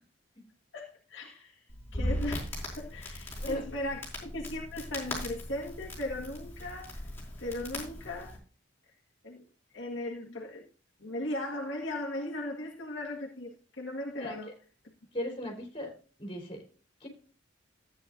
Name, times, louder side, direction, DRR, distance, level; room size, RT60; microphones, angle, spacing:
voice 1, 0.7-1.6 1.9-7.0 7.4-8.4 9.2-9.4 9.7-10.7 11.0-14.5, left 1 dB, 65° left, 1.7 m, -37 dB
Crackle, 1.7-8.4, left 1 dB, 10° left, 4.8 m, -38 dB
voice 2, 15.1-15.9 16.2-16.6 17.0-17.1, equal, 30° left, 3.7 m, -38 dB
14.0 x 9.0 x 2.6 m
head